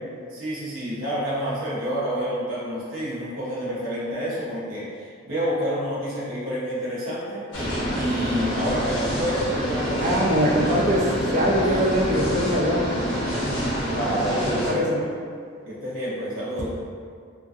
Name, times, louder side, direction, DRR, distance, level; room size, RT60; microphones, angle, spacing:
voice 1, 0.3-10.7 11.7-11.8 13.9-14.8 15.6-16.7, equal, 75° right, -8 dB, 0.7 m, -29 dB
sound 1, 7.5-14.7, equal, 60° left, 0.6 m, -27 dB
voice 2, 10.0-12.9 14.7-15.0, equal, 35° right, -4 dB, 0.4 m, -22 dB
2.4 x 2.2 x 2.3 m, 2.2 s
head